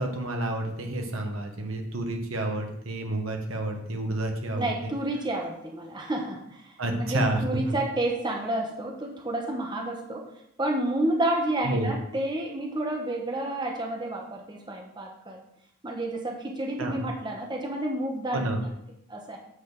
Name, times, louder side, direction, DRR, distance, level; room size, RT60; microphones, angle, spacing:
voice 1, 0.0-4.9 6.8-7.4 11.6-11.9 16.8-17.0 18.3-18.6, right 1 dB, 85° right, 3 dB, 1.4 m, -29 dB
voice 2, 4.5-10.3 10.6-15.4 15.8-18.5 19.1-19.4, right 1 dB, 20° right, 1 dB, 1.0 m, -30 dB
8.0 x 4.1 x 6.7 m, 0.76 s
head